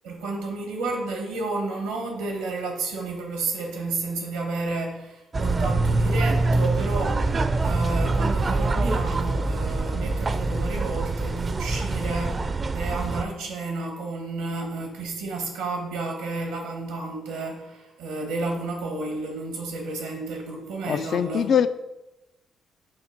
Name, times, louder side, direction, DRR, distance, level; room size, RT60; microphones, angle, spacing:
voice 1, 0.0-21.5, right 3 dB, 90° right, 2 dB, 1.4 m, -31 dB
sound 1, 5.3-13.2, right 2 dB, 40° right, 0.4 m, -24 dB
voice 2, 20.9-21.7, left 8 dB, 60° left, 11 dB, 0.3 m, -22 dB
7.5 x 2.6 x 5.1 m, 0.96 s
hypercardioid pair, 50°, 0 cm